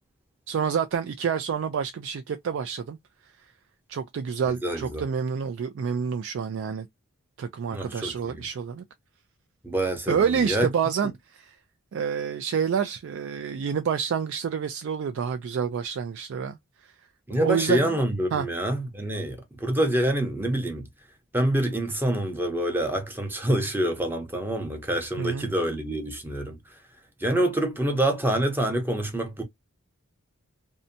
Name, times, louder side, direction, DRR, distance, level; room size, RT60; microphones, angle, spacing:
voice 1, 0.5-3.0 3.9-6.9 7.4-8.8 10.1-11.6 11.9-16.6 16.8-16.9 17.3-18.0 18.3-18.5 25.2-25.5, right 7 dB, 60° right, 0.3 m, -28 dB
voice 2, 4.6-5.0 7.7-8.3 9.6-10.7 17.3-20.9 21.3-26.6 27.2-29.4, right 1 dB, 10° right, 0.7 m, -26 dB
2.7 x 2.1 x 2.5 m
head